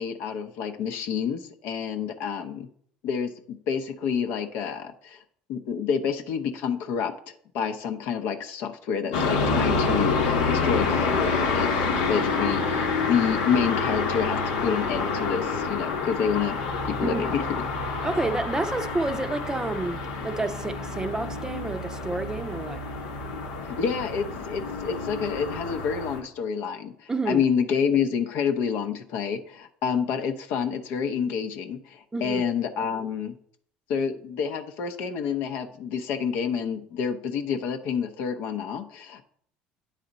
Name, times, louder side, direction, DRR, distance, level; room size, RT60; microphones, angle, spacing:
voice 1, 0.0-2.7 3.0-5.2 5.5-7.1 7.5-16.6 16.9-17.4 23.6-33.3 33.9-39.2, left 7 dB, 70° left, 0.7 m, -28 dB
sound 1, 9.1-26.2, left 4 dB, 90° left, 1.1 m, -28 dB
voice 2, 18.0-22.8 27.1-27.4 32.1-32.4, right 2 dB, 15° right, 0.5 m, -29 dB
8.9 x 4.2 x 4.0 m
supercardioid pair, 80°, 4 cm